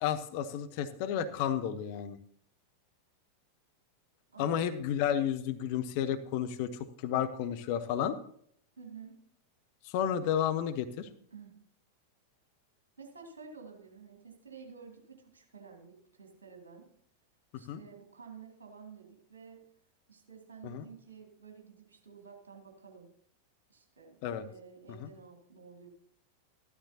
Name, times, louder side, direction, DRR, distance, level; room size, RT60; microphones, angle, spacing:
voice 1, 0.0-2.2 4.4-6.7 7.0-8.2 9.8-11.1 17.7-17.8 20.6-20.9 24.2-24.4 25.0-25.1, left 9 dB, 45° left, 9 dB, 0.8 m, -32 dB
voice 2, 4.3-4.8 8.8-9.2 11.3-11.6 13.0-16.9 17.5-19.6 20.1-23.1 23.7-25.9, right 6 dB, 65° right, 2 dB, 2.4 m, -51 dB
13.0 x 12.0 x 2.8 m, 0.64 s
figure-of-eight pair, 90°, 0 cm